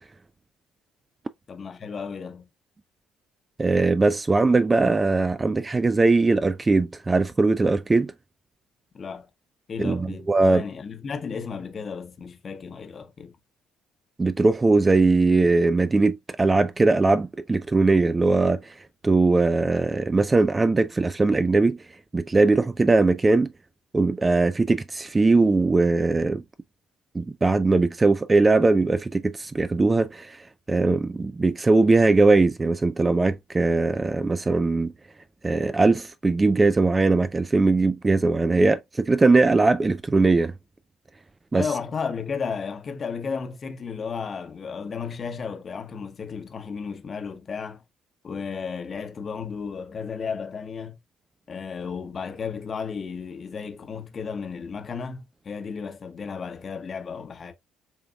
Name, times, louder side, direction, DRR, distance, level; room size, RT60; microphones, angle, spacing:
voice 1, 1.5-2.4 8.9-9.3 9.7-13.4 41.5-47.8 48.2-51.0 51.5-57.5, left 5 dB, 40° left, 0.9 m, -33 dB
voice 2, 3.6-8.1 9.8-10.6 14.2-18.7 19.0-21.8 22.1-23.5 23.9-26.4 27.1-34.9 35.4-40.5 41.5-41.6, right 3 dB, 25° right, 0.3 m, -20 dB
7.0 x 2.9 x 2.3 m
figure-of-eight pair, 50°, 0 cm